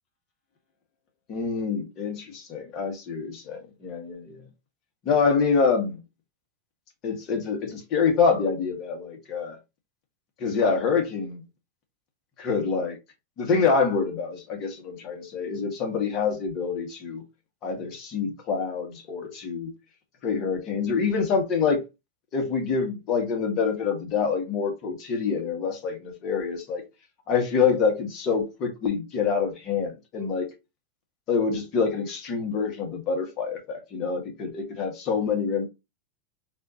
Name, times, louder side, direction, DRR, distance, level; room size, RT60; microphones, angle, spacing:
voice 1, 1.3-4.5 5.0-6.0 7.0-9.6 10.4-11.4 12.4-13.0 13.4-17.2 17.6-19.7 20.2-21.8 22.3-26.8 27.3-30.5 31.3-35.7, left 5 dB, 45° left, 1.6 m, -26 dB
4.1 x 2.7 x 2.9 m
hypercardioid pair, 120°, 0 cm